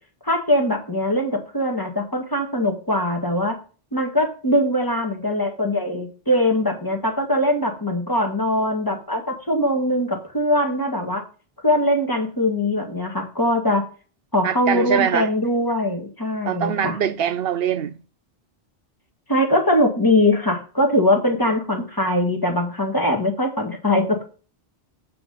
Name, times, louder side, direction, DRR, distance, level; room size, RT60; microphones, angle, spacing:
voice 1, 0.2-3.6 3.9-11.2 11.6-13.8 14.3-17.0 19.3-24.3, left 1 dB, 20° left, 1.9 m, -21 dB
voice 2, 14.4-15.3 16.4-17.9, right 8 dB, 75° right, 0.8 m, -23 dB
7.9 x 4.8 x 5.4 m
omnidirectional pair, 1.0 m